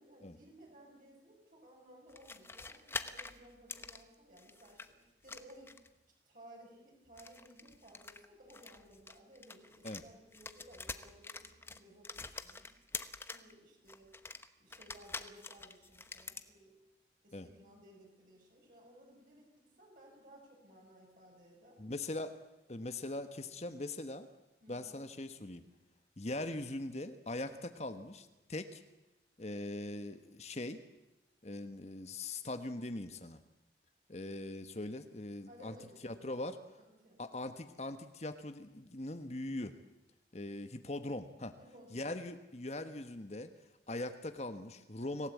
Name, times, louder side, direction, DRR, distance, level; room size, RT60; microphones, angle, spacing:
voice 1, 0.0-5.7 6.3-12.8 13.2-14.1 14.6-16.8 17.2-21.8 24.6-25.0 35.5-36.3 36.8-37.2 41.6-42.1, right 1 dB, 45° right, -2 dB, 6.2 m, -58 dB
sound 1, 2.1-4.9 5.2-6.0 7.1-10.1 10.3-13.5 13.9-16.5, left 3 dB, 15° left, 0.9 m, -46 dB
voice 2, 21.8-22.4 22.7-24.3 24.7-25.6 26.2-28.8 29.4-30.8 31.4-33.4 34.1-35.7 36.0-36.6 37.2-39.7 40.3-41.5 41.9-43.5 43.9-45.3, left 2 dB, 35° left, 9 dB, 1.2 m, -41 dB
26.0 x 17.0 x 8.4 m, 0.99 s
head